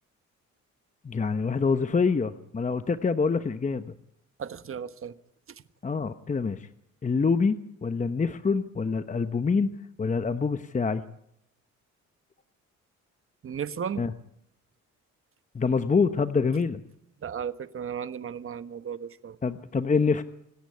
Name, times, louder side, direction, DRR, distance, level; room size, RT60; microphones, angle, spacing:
voice 1, 1.0-3.9 5.8-6.7 7.0-9.7 10.0-11.0 14.0-14.1 15.5-16.8 19.4-20.2, left 5 dB, 25° left, 1.0 m, -26 dB
voice 2, 4.4-5.1 5.5-5.6 13.4-14.1 17.2-19.4, right 7 dB, 45° right, 1.3 m, -35 dB
26.5 x 10.0 x 9.8 m
cardioid pair, 90°, 30 cm